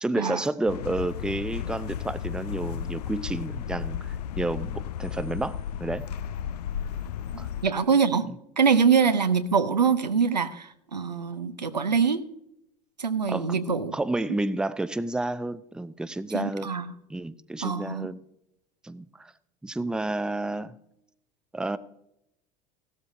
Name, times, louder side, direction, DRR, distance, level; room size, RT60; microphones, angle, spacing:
voice 1, 0.0-6.1 7.4-7.5 8.2-8.3 13.3-13.6 13.9-16.7 17.1-18.2 18.8-19.3 19.6-20.8 21.5-21.8, right 2 dB, 5° right, 14 dB, 0.5 m, -30 dB
sound 1, 0.7-7.7, left 9 dB, 70° left, 0.5 m, -34 dB
voice 2, 7.3-8.3 8.6-12.2 13.0-13.9 16.3-16.9 17.6-18.1, right 6 dB, 90° right, 10 dB, 0.7 m, -24 dB
15.5 x 12.5 x 2.6 m, 0.80 s
figure-of-eight pair, 75°, 21 cm